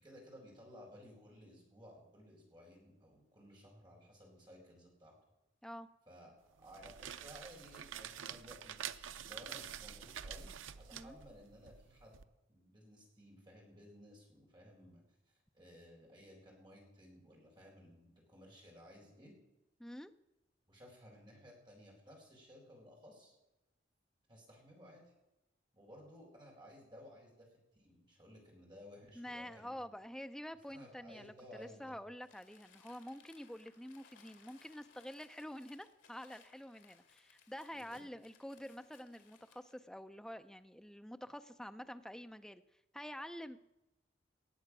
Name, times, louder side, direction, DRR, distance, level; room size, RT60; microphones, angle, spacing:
voice 1, 0.0-5.2 6.1-6.3 6.6-10.5 10.8-12.2 12.5-19.3 20.7-23.4 24.3-25.1 25.7-29.8 30.7-31.9 37.7-38.0, equal, 25° right, -2 dB, 4.2 m, -57 dB
sound 1, 6.6-12.2, right 9 dB, 85° right, 0.5 m, -47 dB
voice 2, 19.8-20.1 29.1-42.6 42.9-43.6, equal, 5° left, 9 dB, 0.5 m, -48 dB
Crumpling crinkling, 32.2-39.8, left 6 dB, 75° left, 2.0 m, -65 dB
18.5 x 7.9 x 6.0 m, 0.97 s
head